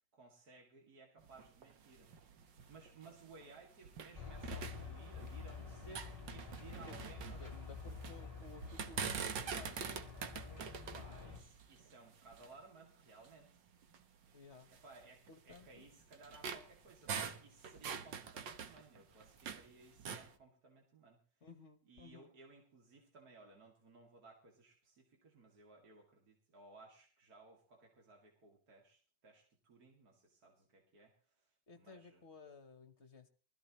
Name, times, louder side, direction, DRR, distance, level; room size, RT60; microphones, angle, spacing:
voice 1, 0.0-2.1 2.7-7.4 10.1-13.5 14.7-21.2 21.8-32.3, right 3 dB, 55° right, -1 dB, 2.9 m, -60 dB
sound 1, 1.2-4.1 4.4-5.5 5.8-8.2 8.6-12.6 13.2-13.3 13.8-14.0 14.7-19.7 20.0-20.3, right 6 dB, 85° right, 1.8 m, -45 dB
sound 2, 4.1-11.4, left 5 dB, 15° right, 3.0 m, -49 dB
voice 2, 6.9-10.0 14.3-14.7 15.3-15.9 21.4-22.3 31.7-33.3, left 3 dB, 45° left, 9 dB, 1.2 m, -56 dB
23.0 x 14.5 x 3.1 m, 0.40 s
omnidirectional pair, 1.9 m